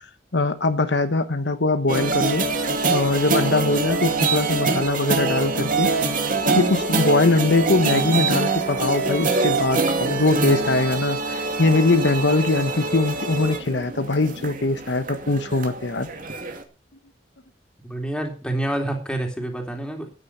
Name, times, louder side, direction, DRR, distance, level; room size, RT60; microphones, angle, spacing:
voice 1, 0.3-5.9 6.5-16.1, left 2 dB, 75° left, 1.1 m, -22 dB
sound 1, 1.9-16.6, right 3 dB, 50° right, 2.4 m, -24 dB
voice 2, 17.8-20.1, right 1 dB, 5° left, 3.4 m, -28 dB
13.5 x 9.8 x 5.7 m
head